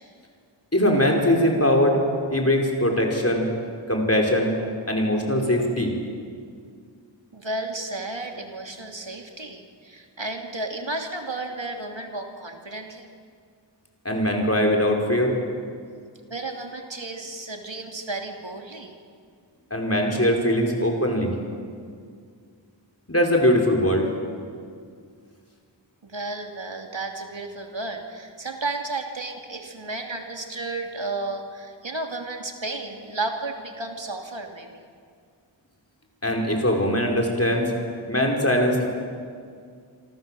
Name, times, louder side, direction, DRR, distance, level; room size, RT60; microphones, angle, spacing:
voice 1, 0.7-2.0 2.3-3.5 3.9-4.6 4.9-5.9 14.1-15.4 19.7-21.3 23.1-24.1 36.2-37.7 38.1-38.9, equal, 30° left, 1 dB, 5.3 m, -21 dB
voice 2, 7.3-13.1 16.3-19.0 26.0-34.8, right 2 dB, 80° right, 3 dB, 2.9 m, -33 dB
27.0 x 26.0 x 7.8 m, 2.2 s
wide cardioid pair, 45°, 45 cm